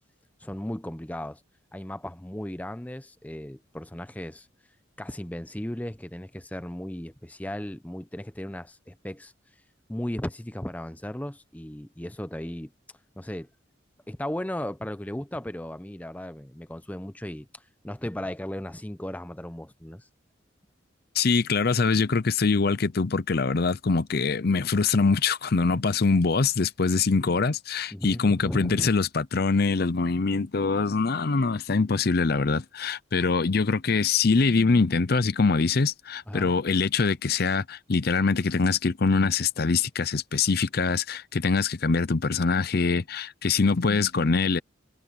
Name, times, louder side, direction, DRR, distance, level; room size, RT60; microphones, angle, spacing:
voice 1, 0.4-1.4 1.7-4.5 5.0-9.3 9.9-12.7 13.2-13.5 14.1-20.1 27.9-28.9 36.3-36.5, left 1 dB, 10° left, 0.7 m, -36 dB
voice 2, 21.1-44.6, left 4 dB, 55° left, 0.6 m, -24 dB
head